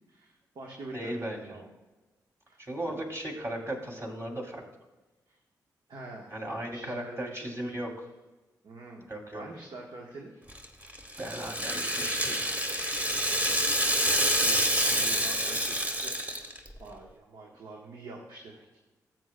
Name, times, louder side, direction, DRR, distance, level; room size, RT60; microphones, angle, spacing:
voice 1, 0.0-1.7 2.5-2.6 2.9-3.0 5.3-5.4 5.9-6.3 6.7-7.6 8.6-9.1 9.3-10.3 13.4-16.5 16.8-18.8, right 3 dB, 65° right, -1 dB, 1.2 m, -46 dB
voice 2, 0.9-1.6 2.6-4.6 6.3-8.1 9.1-9.4 11.2-12.6, right 1 dB, 35° right, 0 dB, 2.8 m, -36 dB
Rattle (instrument), 10.5-16.7, equal, 20° right, 1.3 m, -27 dB
13.5 x 7.6 x 2.2 m, 1.2 s
supercardioid pair, 40°, 8 cm